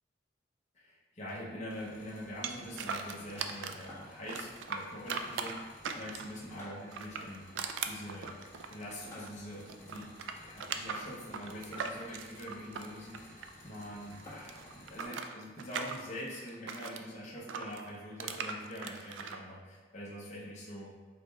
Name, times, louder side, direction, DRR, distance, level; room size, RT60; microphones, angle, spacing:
voice 1, 0.7-8.4 8.7-10.1 10.4-20.9, equal, 40° left, -6 dB, 0.8 m, -44 dB
sound 1, 1.7-15.1, left 1 dB, 15° left, 1.4 m, -54 dB
sound 2, 2.4-3.9 4.3-6.4 6.9-9.4 9.7-13.8 14.1-17.0 17.5-19.4, right 6 dB, 85° right, 0.3 m, -39 dB
5.0 x 4.0 x 2.3 m, 1.4 s
head